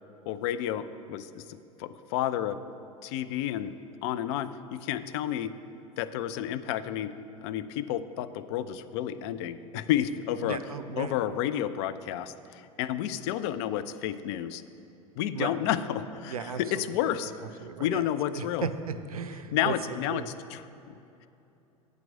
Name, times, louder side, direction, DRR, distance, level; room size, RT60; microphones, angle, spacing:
voice 1, 0.3-2.6 3.0-3.8 4.0-5.5 6.0-7.1 7.4-10.6 11.0-14.6 15.2-17.3 17.8-18.7 19.5-20.6, left 11 dB, 50° left, 12 dB, 0.4 m, -31 dB
voice 2, 10.4-11.1 15.3-15.5 16.3-16.8 17.6-18.0 18.3-20.3, right 6 dB, 80° right, 11 dB, 0.4 m, -35 dB
8.1 x 4.5 x 6.5 m, 2.8 s
figure-of-eight pair, 75°, 19 cm